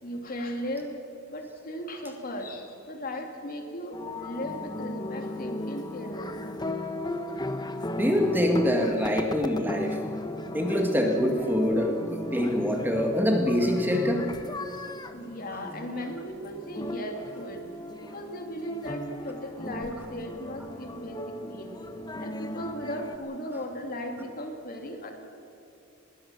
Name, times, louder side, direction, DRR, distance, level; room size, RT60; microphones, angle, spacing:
voice 1, 0.0-1.0 1.3-6.3 9.0-9.1 15.1-17.7 18.0-21.7 22.2-25.1, equal, 45° left, 3 dB, 2.7 m, -37 dB
sound 1, 3.9-23.2, left 1 dB, 20° left, 1.1 m, -36 dB
voice 2, 8.0-10.0 10.5-14.2, equal, 10° right, 2 dB, 1.9 m, -25 dB
21.0 x 18.5 x 7.2 m, 2.9 s
head